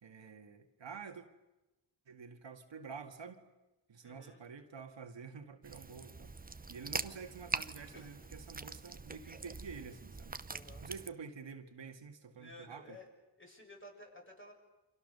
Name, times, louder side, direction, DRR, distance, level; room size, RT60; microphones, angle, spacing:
voice 1, 0.0-1.2 2.1-3.4 3.9-6.4 6.7-10.4 10.8-13.0, right 5 dB, 75° right, 2.0 m, -49 dB
voice 2, 4.0-4.4 6.9-7.2 7.9-8.1 10.5-10.9 12.4-13.1 13.4-14.5, left 1 dB, 25° left, 7.1 m, -54 dB
sound 1, 5.6-11.1, right 3 dB, 20° right, 0.8 m, -43 dB
29.0 x 25.5 x 6.8 m
wide cardioid pair, 85°, 44 cm